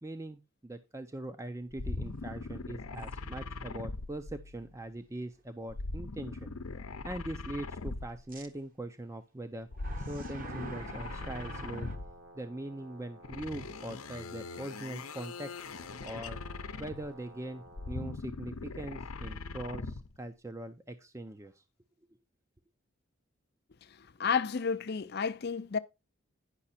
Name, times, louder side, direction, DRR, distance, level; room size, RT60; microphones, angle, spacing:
voice 1, 0.0-6.5 7.0-9.7 10.0-11.9 12.3-15.6 16.0-16.4 16.8-21.6, right 1 dB, 15° right, 0.4 m, -41 dB
sound 1, 1.7-4.8 5.7-8.4 9.7-12.3 13.2-17.2 17.7-20.2, left 3 dB, 90° left, 0.7 m, -41 dB
sound 2, 3.0-3.1 3.8-3.9 8.3-8.5 9.7-12.0, right 3 dB, 40° right, 1.0 m, -46 dB
Brass instrument, 11.1-18.2, right 1 dB, 60° right, 1.5 m, -54 dB
voice 2, 23.8-25.8, left 6 dB, 50° left, 0.5 m, -32 dB
9.8 x 5.8 x 4.2 m
head